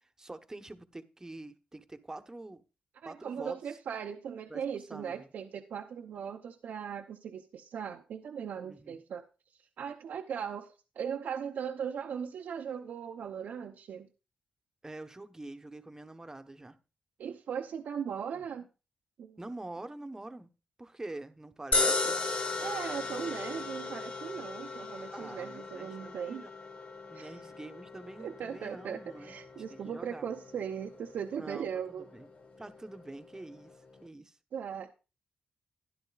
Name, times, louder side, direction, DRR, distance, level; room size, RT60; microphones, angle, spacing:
voice 1, 0.2-2.6 3.0-3.6 4.5-5.3 8.6-9.0 14.8-16.7 18.3-18.4 19.4-20.5 20.8-22.2 25.1-26.5 27.1-29.3 29.7-30.2 31.4-31.7 32.0-32.3 32.6-33.7 34.0-34.4, right 2 dB, 20° right, 1.1 m, -45 dB
voice 2, 3.0-9.2 9.8-14.1 17.2-18.7 19.2-19.4 22.6-26.4 27.1-27.3 28.2-32.1 34.5-34.9, right 7 dB, 75° right, 0.8 m, -38 dB
sound 1, 21.7-34.1, left 3 dB, 50° left, 1.6 m, -37 dB
13.0 x 10.5 x 2.4 m
cardioid pair, 55°, 3 cm